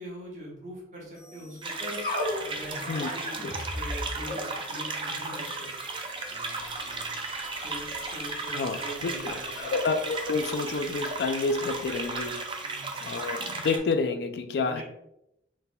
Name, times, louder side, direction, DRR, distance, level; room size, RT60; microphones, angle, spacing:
voice 1, 0.0-2.1 2.4-5.7 6.3-7.2 7.5-9.9 12.6-13.2 14.6-14.8, equal, 45° right, -3 dB, 1.3 m, -43 dB
sound 1, 1.1-13.6, left 1 dB, 45° left, 1.4 m, -41 dB
sound 2, 1.6-13.8, right 3 dB, 30° right, 0.4 m, -35 dB
sound 3, 6.5-12.5, right 1 dB, ahead, 1.0 m, -50 dB
voice 2, 9.2-12.4 13.0-14.8, left 4 dB, 70° left, 8 dB, 0.3 m, -29 dB
4.5 x 3.3 x 2.2 m, 0.83 s
head